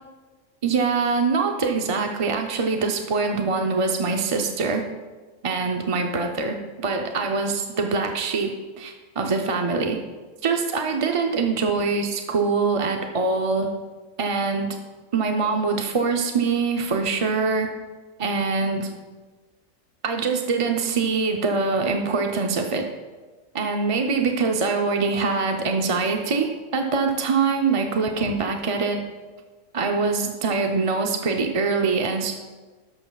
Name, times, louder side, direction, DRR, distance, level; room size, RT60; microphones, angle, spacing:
voice 1, 0.6-4.8 5.4-10.0 10.4-13.7 14.2-14.8 15.1-17.7 18.2-18.9 20.0-22.9 23.5-29.0 29.7-32.3, right 4 dB, 40° right, 3 dB, 0.5 m, -24 dB
12.5 x 11.5 x 2.3 m, 1.3 s
omnidirectional pair, 1.4 m